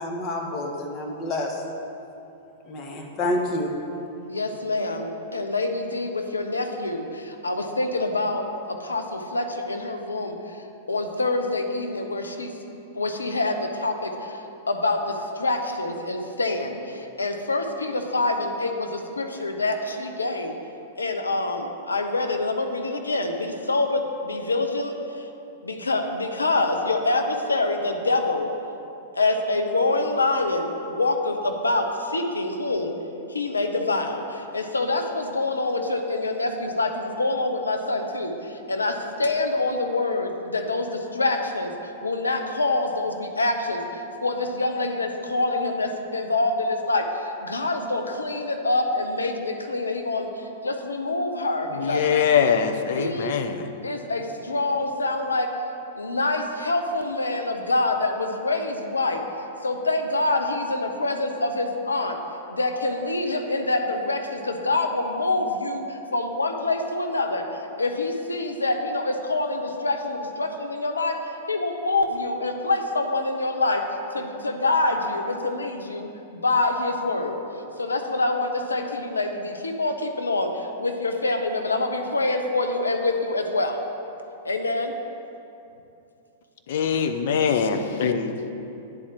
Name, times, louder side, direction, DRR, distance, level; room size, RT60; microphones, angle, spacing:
voice 1, 0.0-1.6 2.6-3.7, left 1 dB, 35° left, 1 dB, 1.4 m, -28 dB
voice 2, 4.3-10.6 10.9-12.5 12.9-20.5 21.0-25.3 25.6-28.5 29.1-32.9 33.3-41.7 42.0-52.0 53.0-53.3 53.8-55.5 56.0-59.2 59.6-62.2 62.5-67.4 67.8-71.2 71.5-73.8 74.1-77.4 77.8-83.8 84.4-84.9, left 2 dB, 90° left, 5 dB, 0.8 m, -26 dB
voice 3, 51.8-53.7 86.7-88.5, left 7 dB, 60° left, 7 dB, 0.7 m, -23 dB
9.8 x 4.4 x 7.5 m, 2.7 s
hypercardioid pair, 105°, 0 cm